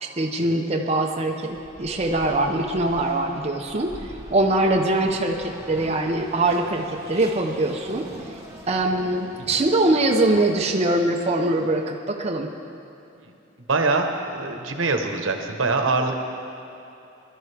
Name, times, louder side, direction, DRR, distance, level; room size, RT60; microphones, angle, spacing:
voice 1, 0.0-8.1 8.7-12.5, right 2 dB, 35° right, 1 dB, 0.7 m, -23 dB
Race car auto racing, 1.5-11.1, right 1 dB, 15° right, 1.7 m, -42 dB
voice 2, 13.7-16.2, right 3 dB, 75° right, 4 dB, 1.1 m, -24 dB
20.5 x 12.0 x 3.5 m, 2.8 s
head